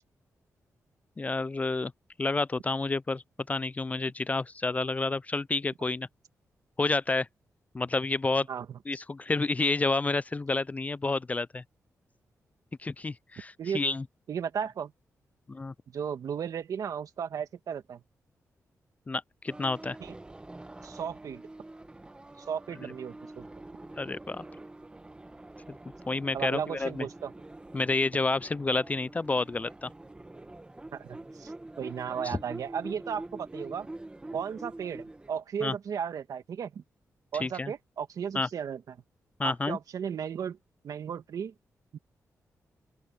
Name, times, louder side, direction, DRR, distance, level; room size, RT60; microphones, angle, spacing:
voice 1, 1.2-1.9 2.2-6.1 6.8-7.3 7.7-8.5 8.9-11.6 12.8-14.0 15.5-15.7 19.1-20.0 24.0-24.4 26.1-27.1 27.7-29.9 32.2-32.4 35.6-35.7 37.4-37.7 38.3-38.5 39.4-39.8, left 3 dB, 25° left, 0.3 m, -29 dB
voice 2, 8.5-8.8 13.6-13.8 14.3-14.9 15.9-18.0 20.0-20.1 20.8-21.4 22.4-23.4 26.3-27.3 30.9-33.9 34.3-36.8 37.3-39.0 39.4-40.6 40.8-41.5 41.9-42.0, right 7 dB, 75° right, 1.8 m, -35 dB
sound 1, 19.5-35.4, right 2 dB, 15° right, 1.1 m, -46 dB
open air
cardioid pair, 95°, 6 cm